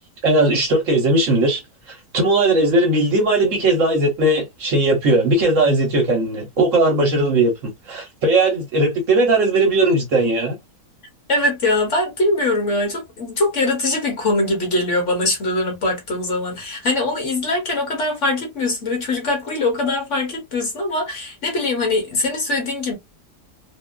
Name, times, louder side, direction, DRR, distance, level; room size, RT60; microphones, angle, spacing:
voice 1, 0.2-1.6 1.9-10.6, right 2 dB, 60° right, 1.0 m, -18 dB
voice 2, 11.3-22.9, left 2 dB, 50° left, 1.2 m, -22 dB
2.8 x 2.3 x 2.2 m
omnidirectional pair, 1.7 m